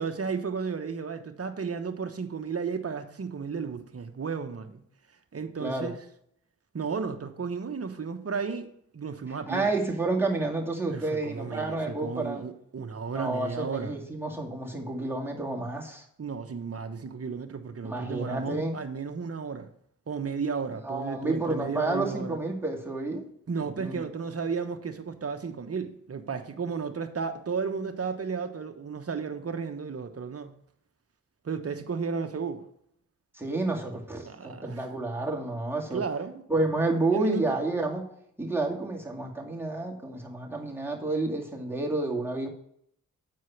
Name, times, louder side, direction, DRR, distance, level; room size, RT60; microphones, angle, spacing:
voice 1, 0.0-4.8 5.3-6.0 6.7-9.7 10.9-14.0 16.2-19.7 20.1-22.4 23.5-30.5 31.4-32.6 34.2-34.8 35.9-36.4 37.1-37.4, right 5 dB, 45° right, 1.0 m, -33 dB
voice 2, 5.6-5.9 9.5-12.5 13.1-16.0 17.8-18.8 20.8-23.3 23.7-24.0 33.3-36.0 36.5-38.1 38.4-42.5, right 2 dB, 5° right, 2.3 m, -30 dB
8.7 x 4.7 x 5.9 m
cardioid pair, 45°, 35 cm